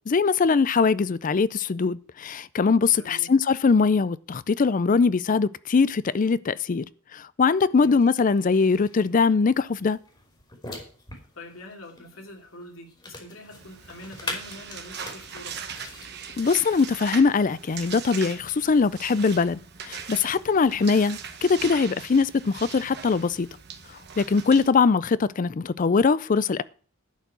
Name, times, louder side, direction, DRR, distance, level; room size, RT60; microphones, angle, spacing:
voice 1, 0.1-6.8 7.1-10.0 16.4-19.6 19.8-23.5 24.2-26.6, left 4 dB, 40° left, 0.4 m, -22 dB
voice 2, 2.9-3.3 7.7-8.0 11.3-15.6 24.4-24.6, left 1 dB, 80° left, 2.8 m, -44 dB
sound 1, 7.8-16.5, left 2 dB, 20° left, 2.8 m, -43 dB
sound 2, 13.6-24.7, right 7 dB, 55° right, 1.0 m, -40 dB
11.0 x 4.7 x 8.2 m
head